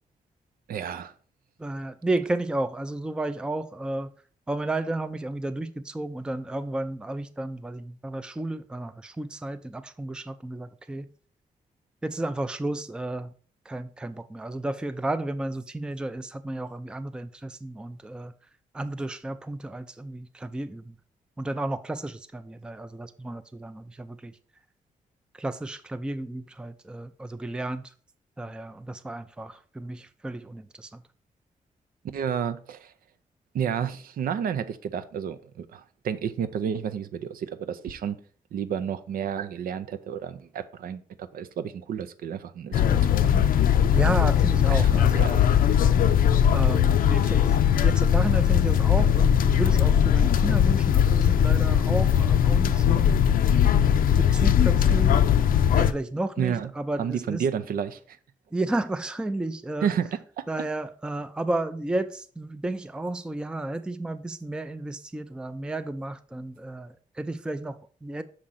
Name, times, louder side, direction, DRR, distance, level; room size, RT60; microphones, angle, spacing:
voice 1, 0.7-1.1 32.1-32.9 33.5-38.2 38.5-43.4 44.7-45.4 56.4-58.2 59.8-60.7, right 8 dB, 90° right, 0.6 m, -31 dB
voice 2, 1.6-4.1 4.5-11.1 12.0-13.3 13.7-18.3 18.7-20.8 21.4-24.3 25.4-27.8 28.4-30.9 43.9-45.5 46.5-47.5 47.8-53.2 54.2-55.3 55.7-57.4 58.5-59.9 60.5-68.2, right 2 dB, 5° right, 0.4 m, -32 dB
sound 1, 42.7-55.9, left 9 dB, 80° left, 0.5 m, -20 dB
6.3 x 3.8 x 5.6 m
wide cardioid pair, 120°, 14 cm